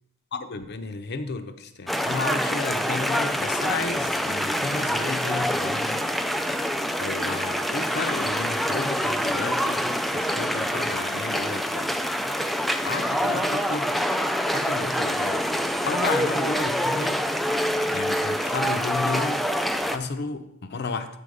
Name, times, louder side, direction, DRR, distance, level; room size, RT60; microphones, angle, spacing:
voice 1, 0.3-6.0 7.0-12.0 12.8-14.0 14.4-15.4 15.8-17.3 17.9-19.4 19.9-21.1, left 3 dB, 50° left, 9 dB, 0.7 m, -32 dB
sound 1, 1.9-20.0, equal, ahead, 0.3 m, -26 dB
8.5 x 5.4 x 4.9 m, 0.82 s
head